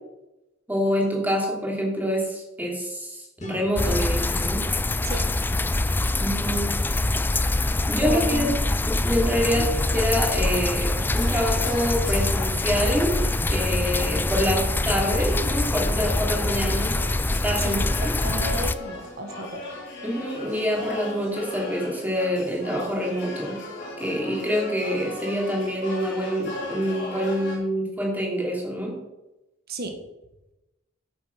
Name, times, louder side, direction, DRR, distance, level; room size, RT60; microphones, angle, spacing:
voice 1, 0.7-4.6 6.2-6.7 7.9-8.5 8.9-13.2 13.5-16.9 17.4-18.1 20.0-23.6 24.0-29.0, equal, 10° right, -2 dB, 2.9 m, -26 dB
sound 1, 3.4-6.3, left 1 dB, 35° left, 2.4 m, -47 dB
sound 2, 3.8-18.7, left 2 dB, 10° left, 0.3 m, -24 dB
voice 2, 8.0-8.6 9.5-9.7 17.6-19.7 29.7-29.9, right 2 dB, 50° right, 5 dB, 1.8 m, -33 dB
sound 3, 10.4-27.6, left 2 dB, 55° left, 3.7 m, -38 dB
8.8 x 8.0 x 6.1 m, 0.98 s
head